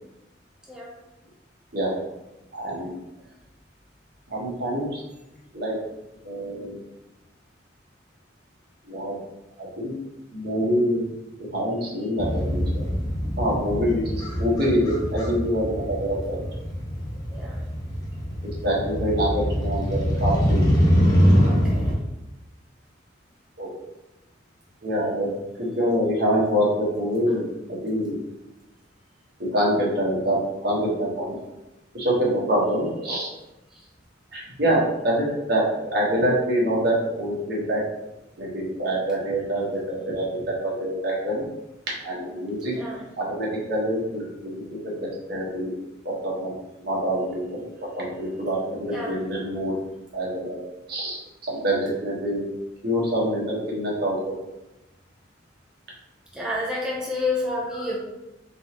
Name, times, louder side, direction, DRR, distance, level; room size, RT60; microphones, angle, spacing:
voice 1, 2.5-2.9 4.3-5.0 5.5-5.8 6.2-6.7 8.9-9.1 9.6-9.9 10.3-11.0 11.5-12.9 13.4-14.0 14.4-16.4 18.6-20.6 23.6-23.7 24.8-25.3 25.6-28.2 29.4-31.4 31.9-33.3 34.3-35.6 35.9-37.8 38.4-41.4 42.0-42.7 43.2-45.7 46.0-46.5 46.8-47.6 48.0-49.7 50.1-50.6 50.9-51.2 51.5-52.4 52.8-54.3 57.7-57.9, equal, 60° right, -4 dB, 1.4 m, -25 dB
Motorcycle, 12.2-21.9, equal, 20° left, 0.9 m, -24 dB
voice 2, 21.4-21.9 42.7-43.0 48.9-49.2 56.3-58.0, left 2 dB, 5° right, -5 dB, 0.7 m, -30 dB
4.0 x 3.8 x 2.9 m, 0.97 s
head